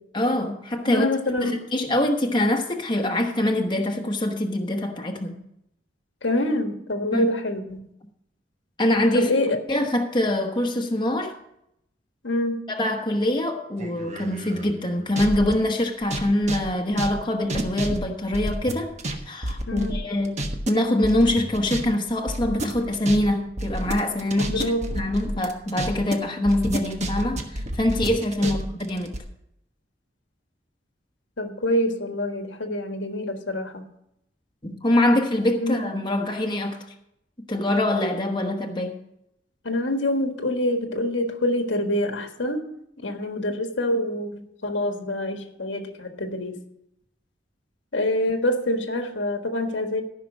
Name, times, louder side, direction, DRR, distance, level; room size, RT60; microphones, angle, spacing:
voice 1, 0.1-1.1 1.4-5.4 7.1-7.3 8.8-11.4 12.7-19.0 19.3-29.2 34.6-36.8 37.5-39.0, left 1 dB, 25° left, 1.1 m, -24 dB
voice 2, 0.9-1.6 6.2-7.8 9.1-9.6 12.2-12.6 19.7-20.0 24.4-25.0 28.4-28.5 31.4-33.8 35.6-35.7 39.6-42.6 43.0-46.6 47.9-50.0, left 1 dB, 90° left, 1.5 m, -26 dB
sound 1, 13.8-15.5 16.0-19.2 19.4-20.7 21.0-21.8 22.1-26.2 26.5-29.2, right 1 dB, 40° right, 1.2 m, -30 dB
13.5 x 5.9 x 6.3 m
head